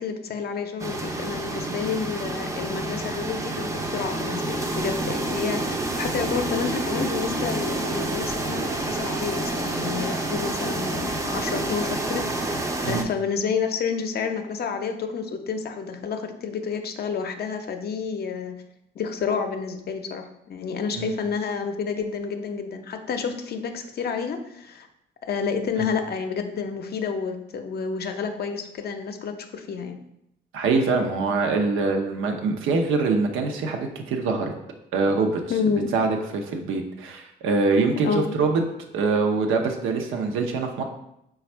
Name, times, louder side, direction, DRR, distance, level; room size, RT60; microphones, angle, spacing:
voice 1, 0.0-18.5 18.9-24.9 25.3-30.0 35.5-35.9 38.0-38.4, left 6 dB, 55° left, 6 dB, 0.5 m, -29 dB
sound 1, 0.8-13.0, right 2 dB, 15° right, 0.4 m, -28 dB
voice 2, 30.5-34.5 34.9-35.4 35.9-38.6 38.9-40.8, right 4 dB, 85° right, 4 dB, 0.6 m, -24 dB
4.1 x 2.3 x 4.3 m, 0.80 s
cardioid pair, 90°, 20 cm